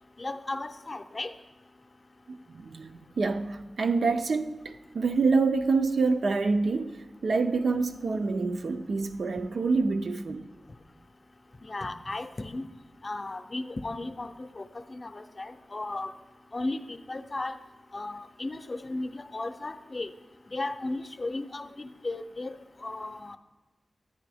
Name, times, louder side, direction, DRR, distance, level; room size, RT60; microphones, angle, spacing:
voice 1, 0.2-1.3 11.6-12.6 13.0-16.1 16.5-17.6 17.9-20.1 20.5-23.4, left 2 dB, 40° left, 0.5 m, -35 dB
voice 2, 2.3-10.5, right 4 dB, 80° right, 0.5 m, -27 dB
9.8 x 9.6 x 3.4 m
wide cardioid pair, 100°, 0 cm